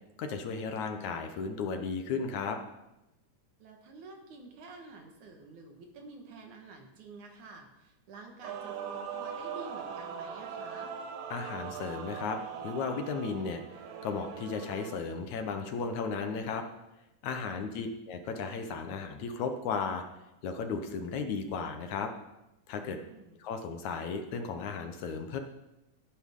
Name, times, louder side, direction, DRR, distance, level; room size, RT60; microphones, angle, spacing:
voice 1, 0.2-2.6 11.3-13.6 14.0-16.7 17.2-20.0 20.4-22.1 22.7-23.0 23.4-25.4, left 5 dB, 70° left, 5 dB, 2.2 m, -35 dB
voice 2, 3.6-11.0 17.5-17.9 23.0-23.4, right 3 dB, 70° right, 3 dB, 2.9 m, -49 dB
Male singing / Female singing / Musical instrument, 8.4-15.0, right 7 dB, 85° right, 2.7 m, -41 dB
16.0 x 10.5 x 3.7 m, 0.92 s
omnidirectional pair, 3.8 m